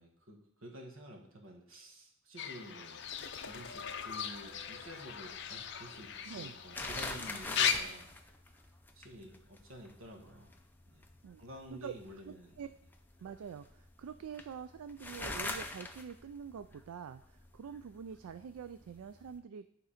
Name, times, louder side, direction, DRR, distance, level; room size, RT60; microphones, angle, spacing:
voice 1, 0.0-3.1 3.4-8.2 8.9-10.5 10.9-11.1 11.4-12.6, equal, 65° right, 2 dB, 1.5 m, -50 dB
Fowl / Bird, 2.4-7.7, left 8 dB, 50° left, 0.6 m, -38 dB
sound 1, 3.0-19.4, left 2 dB, 10° left, 0.5 m, -46 dB
voice 2, 6.3-6.6 11.2-11.4 11.7-11.9 12.3-12.7 13.2-19.7, right 7 dB, 85° right, 11 dB, 0.3 m, -46 dB
11.5 x 3.9 x 5.0 m, 0.69 s
head